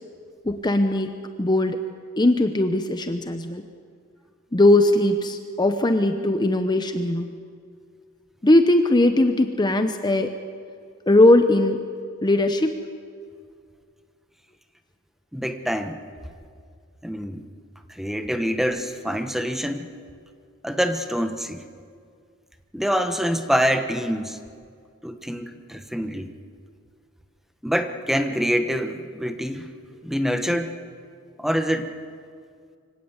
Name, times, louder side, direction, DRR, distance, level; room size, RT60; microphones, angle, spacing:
voice 1, 0.4-1.1 1.4-1.8 2.2-3.6 4.5-7.3 8.4-10.3 11.1-11.8 12.2-12.7, left 1 dB, 20° left, 7 dB, 0.8 m, -19 dB
voice 2, 15.3-16.0 17.0-17.5 17.9-19.9 20.6-21.7 22.7-24.4 25.0-26.3 27.6-29.7 30.0-30.8 31.4-31.9, equal, ahead, 7 dB, 1.1 m, -25 dB
25.0 x 17.0 x 8.1 m, 2.1 s
head